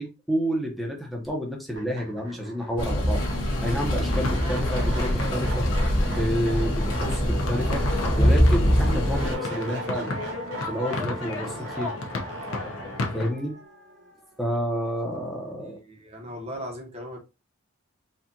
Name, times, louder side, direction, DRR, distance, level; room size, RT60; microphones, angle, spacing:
voice 1, 0.0-3.2 3.6-5.7 6.1-7.8 8.2-10.1 10.7-11.9 13.1-13.5 14.4-15.8, equal, ahead, 0.7 m, -29 dB
sound 1, 1.2-1.3 1.7-14.8, right 2 dB, 60° right, 1.2 m, -40 dB
sound 2, 2.8-9.3, equal, 60° left, 1.3 m, -23 dB
sound 3, 4.0-13.3, left 3 dB, 85° left, 0.8 m, -34 dB
voice 2, 15.5-17.2, equal, 30° right, 0.9 m, -38 dB
4.4 x 2.4 x 2.6 m
head